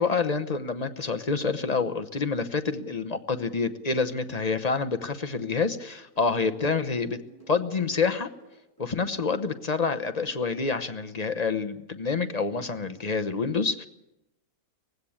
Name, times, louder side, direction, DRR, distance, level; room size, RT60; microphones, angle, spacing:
voice 1, 0.0-7.2 7.5-8.3 8.8-13.9, left 4 dB, 30° left, 8 dB, 0.8 m, -27 dB
sound 1, 5.4-9.4, right 5 dB, 15° left, 7.9 m, -54 dB
19.0 x 16.0 x 8.7 m, 0.90 s
omnidirectional pair, 1.6 m